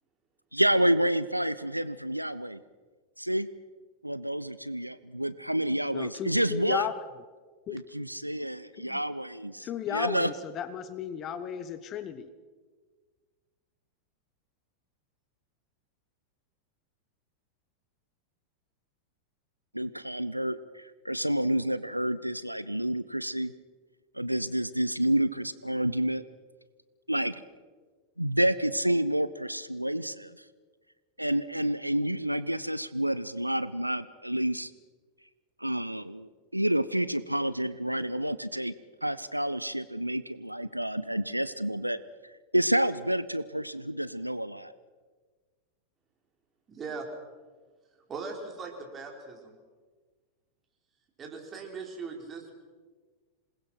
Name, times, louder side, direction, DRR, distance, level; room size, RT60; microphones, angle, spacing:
voice 1, 0.5-2.6 3.2-3.5 4.0-6.8 7.7-10.3 19.7-23.5 24.1-26.2 27.1-27.4 28.2-30.4 31.2-34.7 35.6-38.7 39.0-42.0 42.2-44.7, right 1 dB, 90° right, 16 dB, 0.6 m, -29 dB
voice 2, 5.9-7.0 7.7-7.8 8.8-9.0 9.6-12.3, left 9 dB, 30° left, 12 dB, 1.2 m, -34 dB
voice 3, 46.7-47.1 48.1-49.6 51.2-52.5, right 4 dB, 25° right, 2 dB, 5.0 m, -39 dB
27.0 x 20.5 x 5.9 m, 1.4 s
figure-of-eight pair, 90°, 0 cm